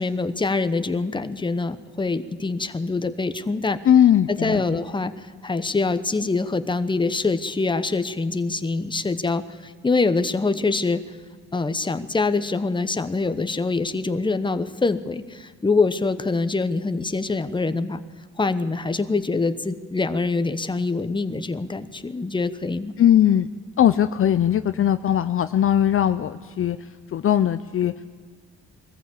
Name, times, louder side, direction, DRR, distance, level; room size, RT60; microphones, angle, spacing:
voice 1, 0.0-3.8 4.3-11.0 11.5-18.0 18.4-22.9, left 3 dB, 15° left, 11 dB, 1.0 m, -24 dB
voice 2, 3.9-4.6 23.0-23.5 23.8-26.8 27.1-28.1, left 10 dB, 45° left, 11 dB, 0.6 m, -19 dB
21.5 x 14.5 x 8.5 m, 1.5 s
cardioid pair, 90°, 30 cm